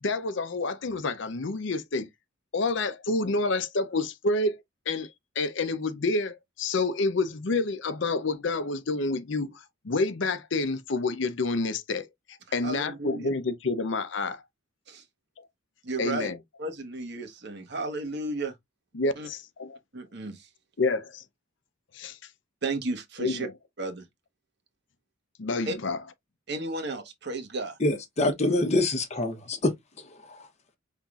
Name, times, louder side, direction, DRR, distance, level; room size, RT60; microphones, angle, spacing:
voice 1, 0.0-2.1 2.5-14.4 15.4-15.5 16.0-16.4 18.9-19.7 20.8-21.2 21.9-22.2 23.2-23.5 25.4-26.0, left 3 dB, 60° left, 0.6 m, -28 dB
voice 2, 12.6-13.3 14.9-15.0 15.8-16.3 16.6-18.5 19.2-19.3 19.9-20.5 22.6-23.5 23.8-24.0 25.7-25.8 26.5-27.8, right 2 dB, 55° right, 1.1 m, -33 dB
voice 3, 27.8-29.7 30.3-30.4, left 2 dB, 35° left, 0.9 m, -25 dB
5.6 x 3.5 x 2.4 m
head